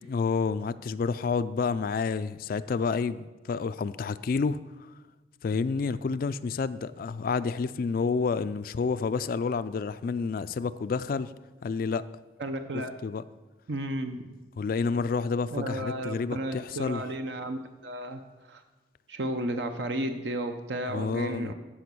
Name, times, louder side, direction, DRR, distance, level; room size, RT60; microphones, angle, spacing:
voice 1, 0.1-4.6 5.4-11.3 11.6-12.0 13.0-13.2 14.6-17.0 20.9-21.5, left 5 dB, 50° left, 14 dB, 0.3 m, -29 dB
voice 2, 12.4-12.9 13.7-14.3 15.5-18.6 19.1-21.5, right 1 dB, 70° right, 6 dB, 0.7 m, -33 dB
13.5 x 5.1 x 6.1 m, 1.1 s
head